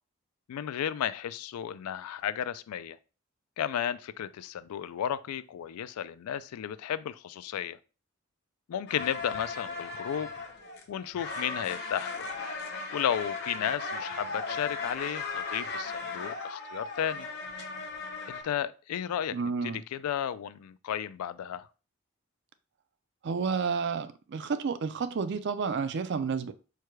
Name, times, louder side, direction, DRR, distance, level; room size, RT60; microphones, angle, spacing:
voice 1, 0.5-3.0 3.6-7.8 8.7-10.3 10.9-12.3 12.9-17.3 18.3-19.4 19.9-21.7, left 9 dB, 80° left, 0.3 m, -33 dB
sound 1, 8.9-18.4, left 3 dB, 50° left, 0.8 m, -37 dB
voice 2, 19.3-19.8 23.2-26.5, right 5 dB, 50° right, 0.4 m, -30 dB
4.7 x 2.2 x 4.6 m
head